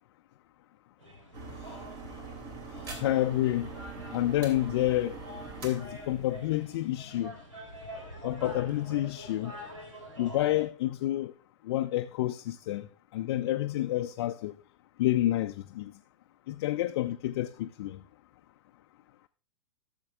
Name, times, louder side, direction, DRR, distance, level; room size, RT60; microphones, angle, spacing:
sound 1, 1.0-10.7, equal, 85° right, 3.2 m, -46 dB
sound 2, 1.3-6.8, right 4 dB, 45° right, 2.6 m, -43 dB
voice 1, 2.8-3.7 4.1-5.2 5.6-7.3 8.2-9.5 10.2-11.3 11.6-12.9 13.1-14.5 15.0-15.9 16.5-18.0, left 14 dB, 50° left, 0.5 m, -29 dB
16.0 x 7.2 x 2.4 m
figure-of-eight pair, 100°, 16 cm